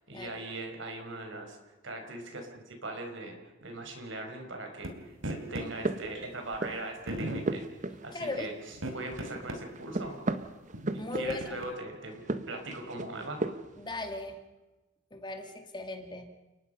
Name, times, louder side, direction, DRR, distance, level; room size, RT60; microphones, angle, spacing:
voice 1, 0.1-1.6 1.8-7.6 8.0-8.5 8.9-10.2 10.9-13.4, right 2 dB, 65° right, 4 dB, 5.2 m, -40 dB
sound 1, 4.8-4.9 5.2-5.7 6.5-6.6 7.1-7.5 8.7-9.6 10.0-10.1 10.7-11.7, right 1 dB, 85° right, 3.4 m, -37 dB
sound 2, 5.5-6.9 7.2-8.8 9.1-11.6 12.1-13.8, right 2 dB, 40° right, 1.2 m, -36 dB
voice 2, 8.1-8.5 11.0-11.7 13.8-14.4 15.1-16.3, left 2 dB, 25° left, 6 dB, 1.9 m, -38 dB
30.0 x 19.0 x 5.7 m, 1.1 s
head